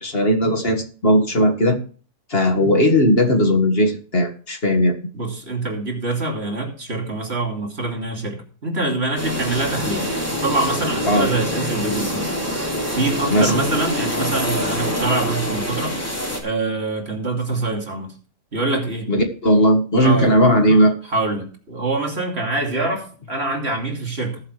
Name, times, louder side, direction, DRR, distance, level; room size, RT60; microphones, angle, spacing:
voice 1, 0.0-1.8 2.3-5.0 11.1-11.3 13.3-13.6 19.1-20.9, equal, 50° left, 5 dB, 2.0 m, -17 dB
voice 2, 5.1-12.3 13.0-16.0 16.4-18.1 18.5-19.1 20.0-20.3 21.1-24.4, right 2 dB, 50° right, 2 dB, 3.1 m, -25 dB
sound 1, 9.2-16.4, equal, 10° left, 3.2 m, -25 dB
19.5 x 7.7 x 3.3 m, 0.41 s
omnidirectional pair, 1.4 m